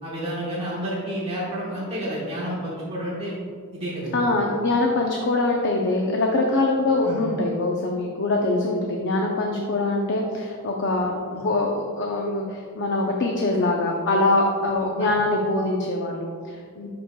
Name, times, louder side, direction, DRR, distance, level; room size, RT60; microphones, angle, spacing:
voice 1, 0.0-3.4 3.7-4.2 7.0-7.2 11.3-11.4 15.0-15.1, equal, 25° right, -7 dB, 1.3 m, -30 dB
voice 2, 4.1-16.9, left 2 dB, 55° left, 1 dB, 0.6 m, -23 dB
9.1 x 6.1 x 2.2 m, 2.1 s
head